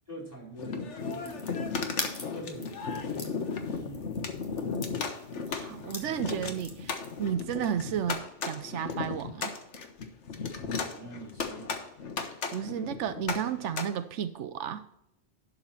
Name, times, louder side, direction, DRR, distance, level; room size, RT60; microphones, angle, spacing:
voice 1, 0.1-1.6 2.2-5.0 10.7-11.8, right 1 dB, 15° right, -3 dB, 4.5 m, -46 dB
sound 1, 0.6-13.8, left 5 dB, 80° left, 1.5 m, -35 dB
sound 2, 1.0-7.3, left 1 dB, 25° left, 1.6 m, -43 dB
voice 2, 5.5-9.5 12.5-14.8, right 9 dB, 90° right, 11 dB, 1.0 m, -33 dB
11.5 x 4.6 x 5.7 m, 0.75 s
omnidirectional pair, 1.2 m